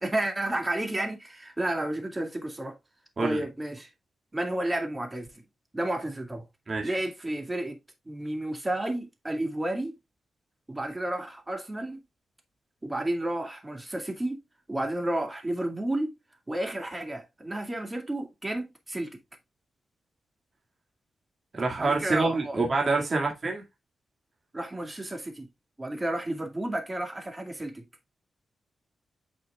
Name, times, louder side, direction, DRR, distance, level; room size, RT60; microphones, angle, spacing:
voice 1, 0.0-2.7 3.2-3.9 4.3-5.4 5.7-6.4 6.8-7.8 8.1-9.9 10.7-12.0 12.8-14.4 14.7-16.2 16.5-19.2 21.8-22.6 24.5-25.5 25.8-27.8, right 1 dB, 15° right, 2.2 m, -31 dB
voice 2, 21.5-23.6, right 3 dB, 35° right, 2.1 m, -26 dB
9.0 x 6.1 x 2.3 m
cardioid pair, 105°, 0 cm